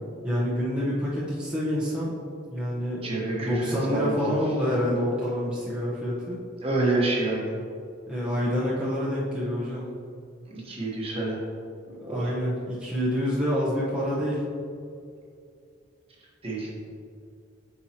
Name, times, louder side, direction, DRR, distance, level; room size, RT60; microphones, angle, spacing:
voice 1, 0.2-2.1 2.5-6.4 8.1-9.9 11.9-14.4, equal, 5° right, -9 dB, 1.0 m, -27 dB
voice 2, 3.0-4.4 6.6-7.5 10.5-11.4 12.1-12.3 16.4-16.7, right 2 dB, 30° right, -4 dB, 1.2 m, -28 dB
8.5 x 4.7 x 2.9 m, 2.4 s
head